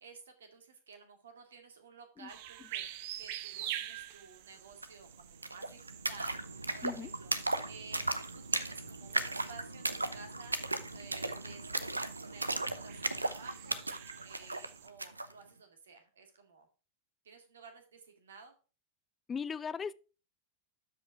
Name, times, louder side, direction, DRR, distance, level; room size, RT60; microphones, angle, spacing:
voice 1, 0.0-2.9 3.2-6.3 6.7-7.3 7.6-8.0 8.3-10.6 10.9-11.9 12.2-13.8 14.2-16.7 17.2-18.5, right 5 dB, 65° right, 2.2 m, -53 dB
sound 1, 2.3-14.9, right 12 dB, 50° right, 0.8 m, -47 dB
sound 2, 4.8-4.9 5.1-15.3, right 2 dB, 80° right, 0.7 m, -36 dB
voice 2, 19.3-19.9, left 6 dB, 20° left, 0.4 m, -37 dB
12.5 x 5.3 x 4.8 m
figure-of-eight pair, 90°, 0 cm